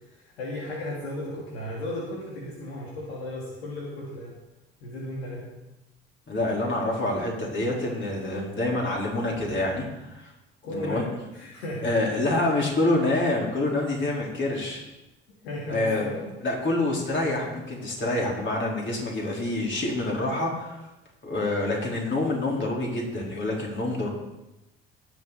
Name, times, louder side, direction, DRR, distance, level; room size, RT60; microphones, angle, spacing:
voice 1, 0.1-4.3 4.8-5.5 10.6-11.1 11.3-12.0 15.4-16.2, left 1 dB, 80° left, -4 dB, 2.3 m, -35 dB
voice 2, 6.3-10.3 10.7-11.0 11.8-14.8 15.7-16.0 16.4-20.8 21.2-24.1, left 2 dB, 35° left, -2 dB, 4.3 m, -27 dB
18.5 x 7.3 x 4.1 m, 0.96 s
figure-of-eight pair, 50°, 31 cm